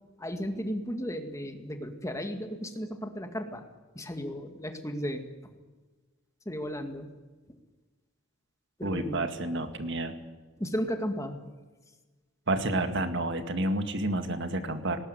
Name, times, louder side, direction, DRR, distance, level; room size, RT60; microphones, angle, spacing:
voice 1, 0.2-3.6 3.9-5.5 6.5-7.1 8.8-9.2 10.6-11.4, equal, 15° left, 6 dB, 2.0 m, -34 dB
voice 2, 8.8-10.2 12.5-15.0, right 1 dB, 60° right, 8 dB, 2.1 m, -30 dB
19.5 x 19.0 x 9.4 m, 1.3 s
head